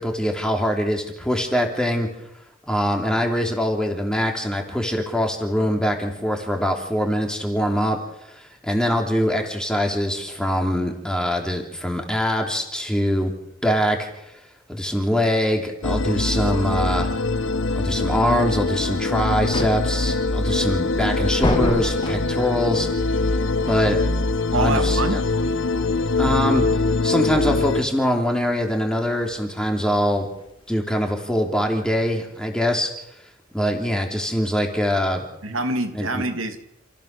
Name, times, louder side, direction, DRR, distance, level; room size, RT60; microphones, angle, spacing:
voice 1, 0.0-2.1 2.7-8.0 8.3-13.3 13.6-14.3 14.7-17.1 17.7-22.9 23.6-24.0 24.5-25.2 26.2-26.7 27.0-30.3 30.7-32.9 33.5-35.3 35.9-36.2, equal, 5° left, 2 dB, 3.2 m, -23 dB
sound 1, 15.8-27.8, left 3 dB, 60° left, 1.1 m, -23 dB
sound 2, 18.6-30.7, left 1 dB, 25° left, 2.5 m, -32 dB
voice 2, 24.5-25.2 35.4-36.6, right 2 dB, 75° right, 5 dB, 2.5 m, -25 dB
29.0 x 15.0 x 6.7 m, 0.83 s
head